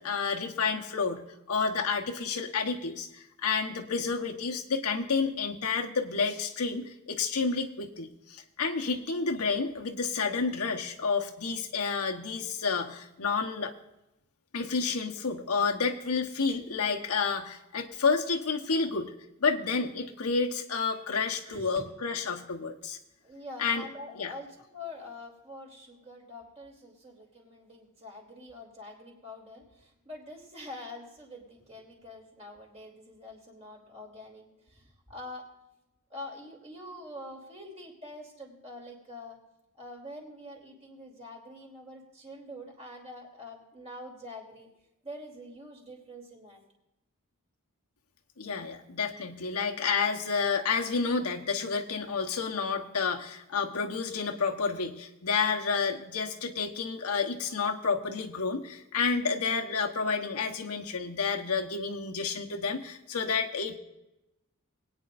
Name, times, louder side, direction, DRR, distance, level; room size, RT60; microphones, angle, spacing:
voice 1, 0.0-13.7 14.5-19.1 19.4-23.0 23.6-23.9 24.2-24.3 48.4-63.8, left 5 dB, 85° left, 2 dB, 1.1 m, -30 dB
voice 2, 21.4-21.9 23.2-35.5 36.1-39.4 39.8-44.7 45.0-46.6 48.8-48.9, left 1 dB, 30° right, 0 dB, 3.1 m, -45 dB
21.5 x 9.2 x 2.6 m, 0.90 s
head